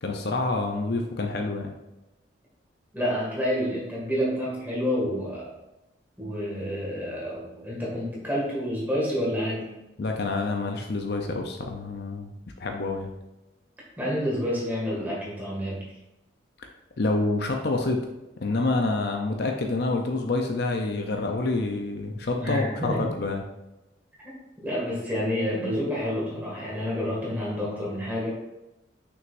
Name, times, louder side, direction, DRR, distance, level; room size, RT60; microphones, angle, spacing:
voice 1, 0.0-1.7 10.0-12.3 12.6-13.1 17.0-18.0 18.4-23.4, left 3 dB, 55° left, 3 dB, 0.6 m, -27 dB
voice 2, 2.9-5.5 6.2-9.7 14.0-16.0 22.4-23.1 24.2-24.3 24.6-28.3, equal, 10° right, -5 dB, 2.0 m, -29 dB
6.2 x 6.1 x 2.6 m, 0.99 s
head